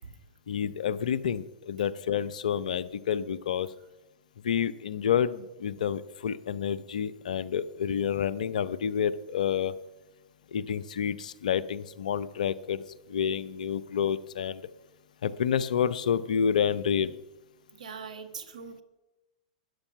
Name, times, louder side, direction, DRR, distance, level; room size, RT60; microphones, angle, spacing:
voice 1, 0.5-3.7 4.4-9.7 10.5-12.8 13.1-14.6 15.2-17.2, left 8 dB, 75° left, 17 dB, 0.7 m, -29 dB
voice 2, 17.7-18.8, right 5 dB, 75° right, 10 dB, 1.6 m, -42 dB
13.0 x 9.9 x 5.8 m, 1.0 s
hypercardioid pair, 110°, 4 cm